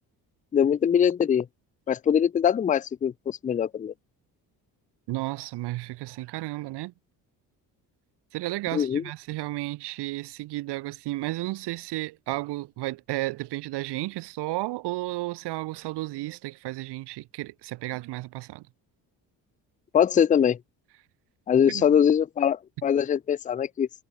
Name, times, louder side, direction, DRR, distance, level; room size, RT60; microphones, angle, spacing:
voice 1, 0.5-1.5 1.9-3.9 8.7-9.0 19.9-20.6 21.5-23.9, left 8 dB, 20° left, 0.4 m, -22 dB
voice 2, 5.1-6.9 8.3-18.7 21.7-21.9, right 19 dB, 80° right, 1.1 m, -33 dB
cardioid pair, 95°, 40 cm